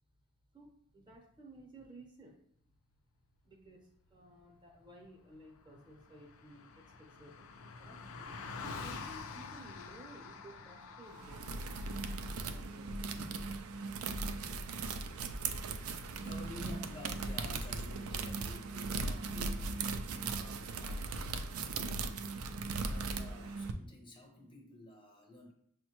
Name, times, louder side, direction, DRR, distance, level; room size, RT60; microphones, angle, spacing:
voice 1, 0.5-2.4 3.4-8.2 8.6-11.8 12.5-13.5, right 1 dB, 20° right, 1 dB, 0.7 m, -56 dB
Car passing by, 5.3-5.4 5.5-12.4, left 4 dB, 70° left, 0.4 m, -47 dB
sound 1, 11.1-23.7, right 3 dB, 75° right, 0.4 m, -38 dB
voice 2, 15.5-21.1 22.0-25.5, left 1 dB, 25° left, 1 dB, 0.6 m, -52 dB
6.1 x 2.1 x 2.9 m, 0.70 s
head